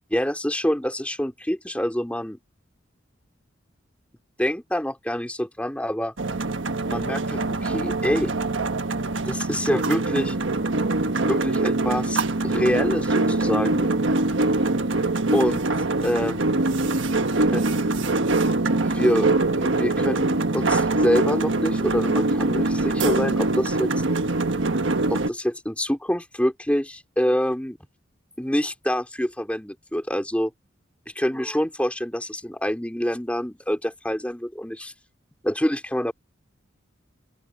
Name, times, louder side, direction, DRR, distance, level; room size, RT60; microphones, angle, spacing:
voice 1, 0.1-2.4 4.4-6.1 6.9-8.3 9.3-10.3 11.2-13.9 15.3-15.7 16.0-16.5 17.3-17.6 18.8-23.9 25.1-27.8 28.4-30.5 31.1-34.9 35.4-36.1, equal, 5° left, 2.8 m, -26 dB
sound 1, 6.2-25.3, right 2 dB, 75° right, 1.4 m, -23 dB
open air
head